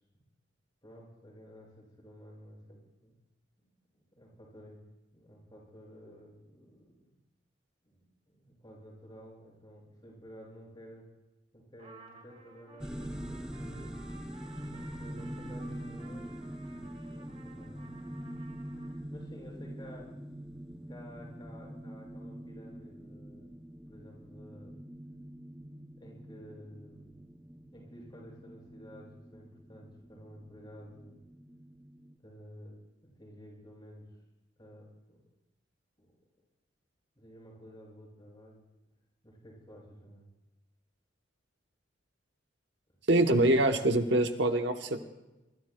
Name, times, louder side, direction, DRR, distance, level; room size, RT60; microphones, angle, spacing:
voice 1, 0.8-3.1 3.6-3.7 3.9-4.8 5.1-7.2 7.8-11.0 11.5-13.9 14.7-16.3 17.1-18.2 18.8-20.1 20.9-23.5 23.9-24.8 26.0-27.3 27.7-31.2 32.2-34.1 34.6-35.2 36.0-36.1 37.1-38.6 39.2-40.3, equal, 25° left, -3 dB, 6.3 m, -52 dB
Trumpet, 11.8-19.0, right 3 dB, 35° right, 2.8 m, -55 dB
sound 1, 12.8-32.2, equal, 5° right, 0.5 m, -44 dB
voice 2, 43.1-45.0, right 1 dB, 60° right, 6 dB, 0.9 m, -25 dB
25.5 x 24.0 x 2.2 m, 1.0 s
head